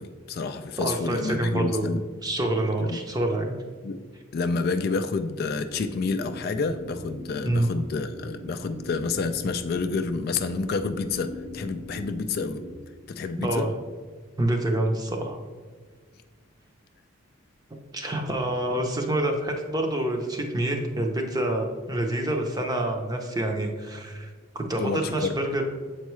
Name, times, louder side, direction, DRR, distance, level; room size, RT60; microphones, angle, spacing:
voice 1, 0.0-2.0 2.8-3.0 3.8-4.0 4.3-12.6 13.1-13.7 24.8-25.4, left 4 dB, 50° left, 9 dB, 0.3 m, -29 dB
voice 2, 0.8-3.5 7.4-7.7 13.4-13.7 14.4-15.4 17.9-25.6, right 1 dB, 20° right, 3 dB, 0.6 m, -27 dB
sound 1, 5.5-12.8, equal, 50° right, 0.9 m, -41 dB
7.2 x 4.5 x 3.1 m, 1.5 s
head